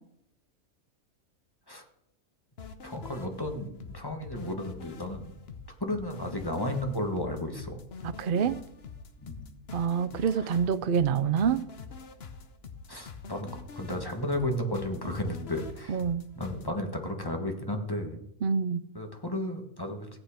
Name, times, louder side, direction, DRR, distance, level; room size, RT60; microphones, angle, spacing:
sound 1, 2.6-16.7, left 5 dB, 45° left, 1.1 m, -45 dB
voice 1, 2.8-5.3 5.8-7.8 9.2-9.6 10.3-10.5 12.9-13.5 13.7-16.0 16.3-18.2 18.9-20.1, left 1 dB, 15° left, 4 dB, 1.6 m, -33 dB
voice 2, 8.0-8.6 9.7-11.6 15.9-16.2 18.4-18.8, right 7 dB, 55° right, 14 dB, 0.6 m, -26 dB
16.0 x 8.8 x 5.1 m, 0.77 s
omnidirectional pair, 1.6 m